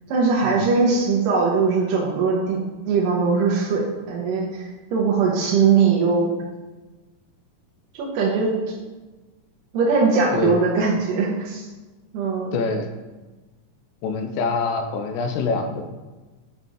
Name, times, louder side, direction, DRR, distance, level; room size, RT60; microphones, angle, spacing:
voice 1, 0.1-2.6 2.9-6.4 7.9-8.5 9.7-11.7 12.1-12.6, right 4 dB, 90° right, -4 dB, 2.5 m, -20 dB
voice 2, 12.5-12.9 14.0-15.9, left 4 dB, 85° left, 6 dB, 2.2 m, -25 dB
7.1 x 4.0 x 3.7 m, 1.2 s
omnidirectional pair, 3.8 m